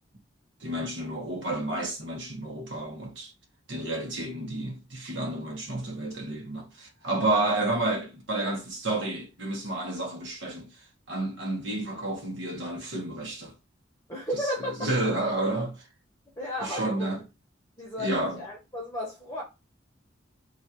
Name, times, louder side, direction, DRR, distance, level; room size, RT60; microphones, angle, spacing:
voice 1, 0.6-3.3 3.7-10.7 11.1-13.5 14.8-15.8 16.6-17.2 18.0-18.4, right 2 dB, 70° right, 1.2 m, -30 dB
voice 2, 14.1-14.9 16.4-17.1 17.8-19.4, left 1 dB, 15° left, 0.9 m, -33 dB
3.2 x 2.5 x 4.2 m
head